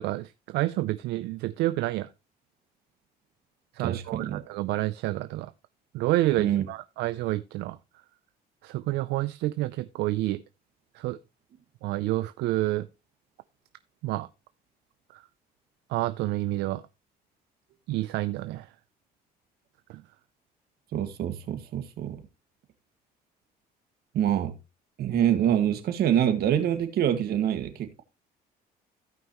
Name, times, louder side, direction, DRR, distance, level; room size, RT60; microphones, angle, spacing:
voice 1, 0.0-2.1 3.7-5.5 5.9-7.8 8.6-10.4 10.9-11.2 11.8-12.9 14.0-14.3 15.1-15.2 15.9-16.8 17.9-18.7 19.9-20.0, right 17 dB, 85° right, 0.5 m, -29 dB
voice 2, 3.8-4.4 6.4-6.6 20.9-22.2 24.1-24.5 25.0-28.0, right 10 dB, 70° right, 1.8 m, -25 dB
16.0 x 5.5 x 3.0 m
cardioid pair, 110°, 17 cm